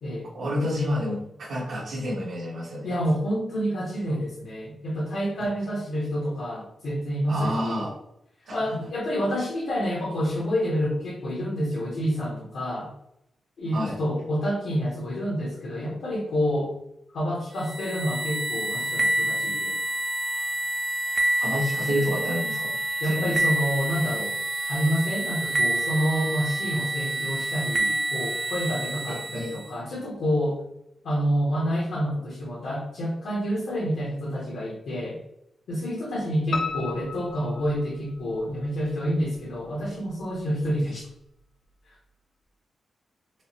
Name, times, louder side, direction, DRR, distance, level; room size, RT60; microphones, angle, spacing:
voice 1, 0.3-2.9 7.3-7.9 8.5-8.6 13.7-14.0 21.4-22.7 23.0-23.4 29.1-29.5, equal, 80° right, -8 dB, 1.1 m, -29 dB
voice 2, 2.8-7.9 8.5-12.9 13.6-16.8 17.1-19.8 23.0-24.4 24.7-30.6 31.0-35.2 35.7-41.1 41.9-42.0, equal, 85° left, -5 dB, 1.0 m, -28 dB
sound 1, 17.6-29.7, right 2 dB, 35° right, 0.5 m, -28 dB
Piano, 36.5-38.4 38.9-39.7 40.1-40.2 40.6-40.7 41.0-41.1, left 5 dB, 60° left, 0.4 m, -34 dB
4.7 x 2.0 x 2.8 m, 0.80 s
wide cardioid pair, 110°, 0 cm